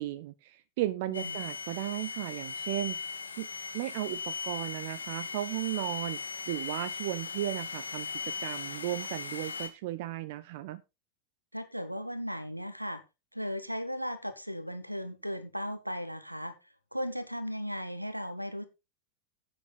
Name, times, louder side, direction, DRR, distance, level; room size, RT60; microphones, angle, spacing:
voice 1, 0.0-3.0 3.4-3.5 3.7-6.2 6.5-10.8, right 14 dB, 50° right, 0.6 m, -35 dB
sound 1, 1.1-9.7, left 5 dB, 75° left, 1.7 m, -38 dB
voice 2, 11.5-13.0 13.3-16.5 16.9-18.6, equal, 90° right, 1.3 m, -36 dB
9.7 x 8.7 x 4.1 m
figure-of-eight pair, 90°, 0 cm